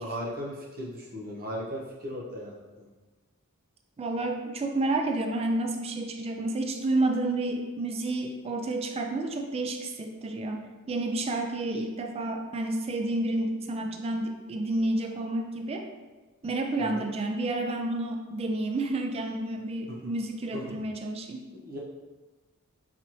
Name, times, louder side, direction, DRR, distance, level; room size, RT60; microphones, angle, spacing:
voice 1, 0.0-2.9 16.9-17.1 20.5-20.8 21.5-21.8, equal, 40° right, -3 dB, 0.8 m, -37 dB
voice 2, 4.0-15.9 16.4-21.4, right 2 dB, 25° right, 3 dB, 0.3 m, -30 dB
4.0 x 2.8 x 3.0 m, 1.2 s
head